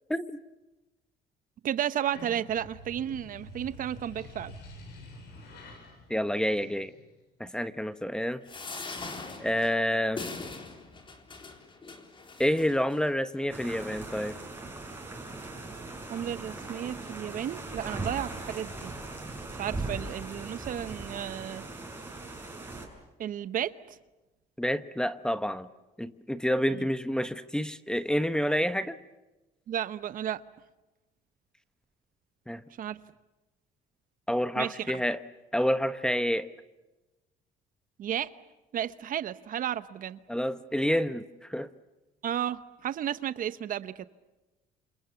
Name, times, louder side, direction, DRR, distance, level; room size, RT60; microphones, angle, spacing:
voice 1, 1.6-4.5 16.1-18.9 19.5-21.7 23.2-24.0 26.7-26.8 29.7-30.4 32.8-33.0 34.6-34.9 38.0-38.3 38.7-40.2 42.2-44.0, right 10 dB, 55° right, 14 dB, 0.9 m, -33 dB
sound 1, 1.9-7.2, left 1 dB, 75° left, 7.8 m, -48 dB
voice 2, 6.1-6.9 7.4-8.4 9.4-10.2 12.4-14.3 24.6-25.7 26.0-29.0 32.5-32.6 34.3-35.2 35.5-36.5 40.3-41.2 41.5-41.7, equal, 5° left, 12 dB, 1.0 m, -28 dB
sound 2, 8.5-13.0 13.7-13.8 14.0-14.1, left 3 dB, 30° left, 3.8 m, -41 dB
sound 3, 13.5-22.9, right 2 dB, 10° right, 6.5 m, -39 dB
29.5 x 27.0 x 7.1 m, 1.1 s
cardioid pair, 110°, 17 cm